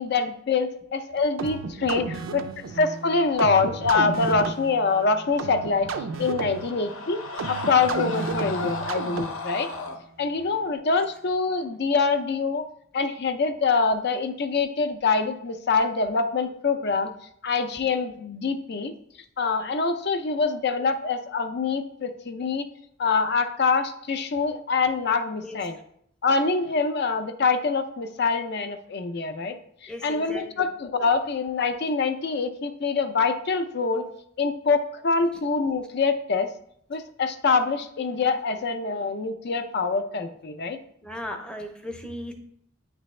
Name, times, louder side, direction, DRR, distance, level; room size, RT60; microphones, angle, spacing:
voice 1, 0.0-5.9 6.2-9.7 10.2-12.6 12.9-17.1 17.4-18.9 19.4-22.7 23.0-25.8 26.2-34.1 34.4-36.5 36.9-40.8, left 4 dB, 55° left, 9 dB, 0.5 m, -25 dB
sound 1, 1.4-9.6, right 4 dB, 75° right, 0.4 m, -33 dB
Screaming, 5.6-10.0, left 3 dB, 85° left, 0.8 m, -35 dB
voice 2, 29.9-30.7 41.0-42.3, left 1 dB, 5° left, 4 dB, 0.6 m, -36 dB
8.9 x 3.3 x 3.1 m, 0.70 s
head